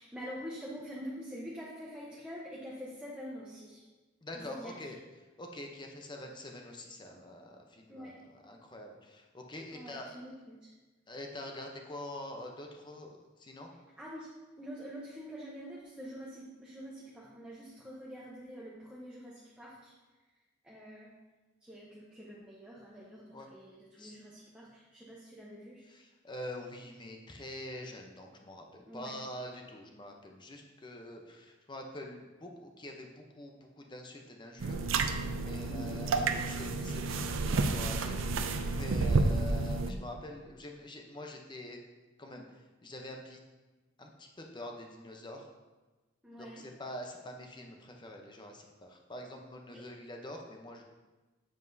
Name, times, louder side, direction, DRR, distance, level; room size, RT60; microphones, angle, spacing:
voice 1, 0.0-3.9 4.3-4.9 7.9-8.2 9.7-10.7 14.0-14.3 14.6-19.9 20.6-21.2 21.6-25.8 28.9-29.2 35.4-36.0 46.2-46.7 49.7-49.8, equal, 5° right, -5 dB, 0.9 m, -46 dB
voice 2, 4.2-4.9 5.4-8.1 8.4-10.2 11.1-13.7 23.3-23.5 24.0-24.2 25.9-34.9 35.4-38.2 38.7-41.8 42.2-42.5 42.8-43.4 44.0-45.5 46.4-50.8, left 1 dB, 25° left, 2 dB, 0.8 m, -45 dB
sound 1, 34.6-39.9, right 3 dB, 85° right, 0.5 m, -30 dB
7.7 x 7.1 x 2.7 m, 1.2 s
head